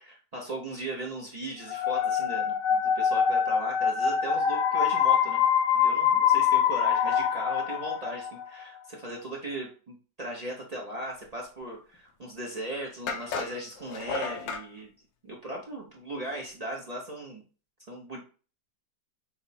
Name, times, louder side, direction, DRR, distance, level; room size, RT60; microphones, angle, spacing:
voice 1, 0.0-5.4 5.7-14.9 15.2-17.4 17.9-18.2, right 1 dB, 85° right, -2 dB, 0.3 m, -38 dB
sound 1, 1.7-8.5, left 8 dB, 65° left, 0.9 m, -24 dB
sound 2, 12.2-12.3 13.1-14.7, left 4 dB, 85° left, 1.4 m, -34 dB
5.9 x 2.0 x 4.1 m, 0.37 s
omnidirectional pair, 2.0 m